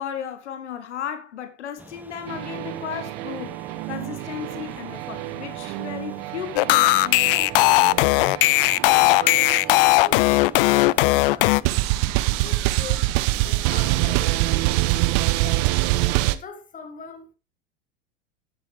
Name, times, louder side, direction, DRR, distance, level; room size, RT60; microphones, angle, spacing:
voice 1, 0.0-3.6 3.9-7.5, left 9 dB, 70° left, 1.7 m, -35 dB
sound 1, 1.8-14.6, right 2 dB, 5° right, 1.0 m, -46 dB
sound 2, 2.3-10.7 11.6-16.4, right 18 dB, 45° right, 0.8 m, -25 dB
sound 3, 6.6-11.6, left 20 dB, 50° left, 0.4 m, -18 dB
voice 2, 8.8-11.8 12.3-15.7 16.3-17.3, left 5 dB, 20° left, 1.8 m, -42 dB
10.5 x 9.0 x 3.5 m
hypercardioid pair, 90°, 36 cm